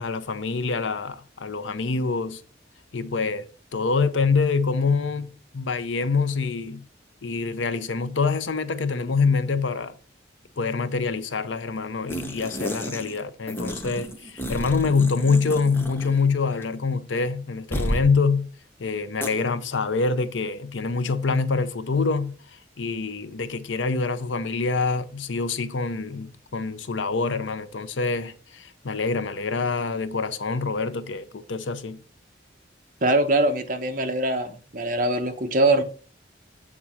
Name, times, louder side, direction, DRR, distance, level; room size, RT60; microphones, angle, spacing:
voice 1, 0.0-2.4 2.9-6.8 7.2-10.0 10.6-18.5 18.8-22.3 22.8-32.0, left 4 dB, 85° left, 0.7 m, -25 dB
sound 1, 12.1-13.2 13.5-16.3 16.5-16.6 17.7-18.1 19.2-19.3, equal, 10° left, 0.9 m, -31 dB
voice 2, 33.0-35.8, right 2 dB, 45° right, 1.0 m, -22 dB
8.4 x 3.7 x 5.8 m
head